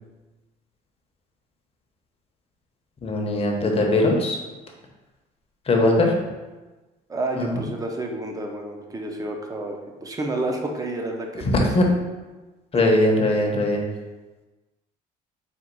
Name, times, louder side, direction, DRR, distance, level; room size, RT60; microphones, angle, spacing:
voice 1, 3.0-4.4 5.7-6.1 7.4-7.6 11.4-11.8 12.7-13.8, left 1 dB, 35° left, 1 dB, 0.8 m, -20 dB
voice 2, 7.1-11.5 12.7-12.9, right 2 dB, 20° right, 2 dB, 0.6 m, -30 dB
4.4 x 2.5 x 3.9 m, 1.2 s
cardioid pair, 110°, 17 cm